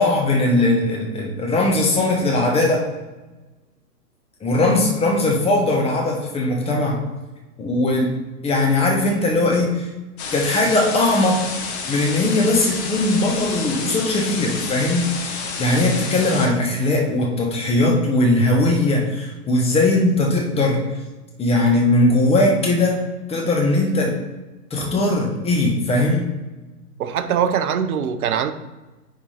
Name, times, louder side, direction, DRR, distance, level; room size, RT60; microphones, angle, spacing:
voice 1, 0.0-2.9 4.4-7.0 7.6-8.1 8.4-9.9 10.3-11.4 11.9-15.3 15.6-20.8 21.4-23.0 23.3-24.1 24.7-26.3, left 2 dB, 10° left, 0 dB, 1.2 m, -19 dB
sound 1, 10.2-16.5, left 4 dB, 45° left, 1.3 m, -30 dB
voice 2, 27.0-28.5, right 8 dB, 65° right, 10 dB, 0.8 m, -22 dB
9.7 x 3.7 x 3.3 m, 1.1 s
hypercardioid pair, 125°, 47 cm